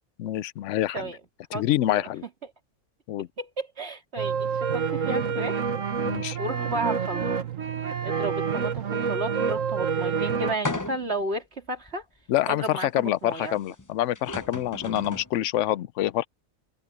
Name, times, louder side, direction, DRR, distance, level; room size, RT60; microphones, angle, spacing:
voice 1, 0.2-1.1 1.5-2.2 3.1-3.3 6.0-6.4 12.3-16.3, left 13 dB, 70° left, 0.9 m, -26 dB
voice 2, 3.4-5.6 6.4-7.4 8.0-12.0 12.5-13.6, right 2 dB, 50° right, 2.8 m, -33 dB
sound 1, 4.2-10.6, right 6 dB, 75° right, 1.7 m, -27 dB
sound 2, 10.6-11.3 11.9-12.0 13.8-13.9 14.1-15.3, left 2 dB, 15° left, 0.7 m, -34 dB
omnidirectional pair, 1.4 m